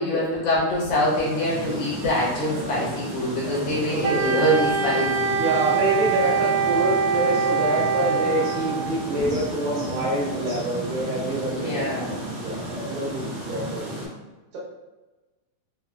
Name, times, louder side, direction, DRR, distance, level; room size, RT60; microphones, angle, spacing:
voice 1, 0.0-5.4 9.2-9.3 11.3-12.1, left 1 dB, 70° left, -7 dB, 2.4 m, -25 dB
sound 1, 0.7-14.1, right 1 dB, 35° right, 1.1 m, -33 dB
voice 2, 3.9-4.3 5.4-14.1, right 1 dB, 70° right, -6 dB, 2.0 m, -27 dB
Wind instrument woodwind instrument, 4.0-8.8, right 5 dB, 90° right, 1.5 m, -24 dB
5.7 x 2.2 x 2.2 m, 1.2 s
omnidirectional pair, 3.6 m